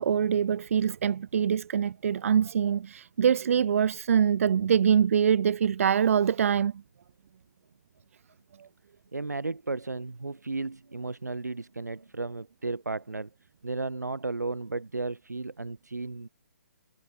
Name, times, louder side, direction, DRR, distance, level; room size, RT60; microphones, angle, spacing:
voice 1, 0.0-6.7, right 8 dB, 55° right, 1.8 m, -24 dB
voice 2, 9.1-13.3 13.6-16.3, right 3 dB, 90° right, 4.3 m, -34 dB
figure-of-eight pair, 140°, 9 cm